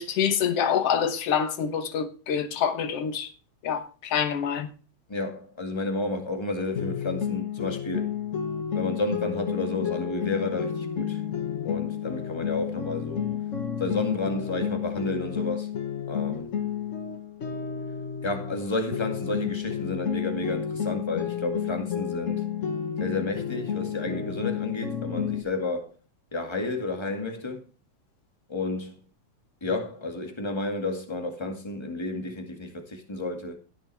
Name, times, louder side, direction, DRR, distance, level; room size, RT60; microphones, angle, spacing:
voice 1, 0.0-3.3 3.6-4.7, left 8 dB, 60° left, 2.0 m, -26 dB
voice 2, 5.1-8.1 8.7-11.2 11.6-13.2 13.8-15.7 16.1-16.6 18.2-22.4 23.0-25.9 26.3-27.7 28.5-29.0 29.6-33.6, left 2 dB, 10° left, 1.5 m, -31 dB
sound 1, 6.8-18.6 18.9-25.4, left 8 dB, 85° left, 0.6 m, -31 dB
17.0 x 7.3 x 3.4 m
omnidirectional pair, 3.3 m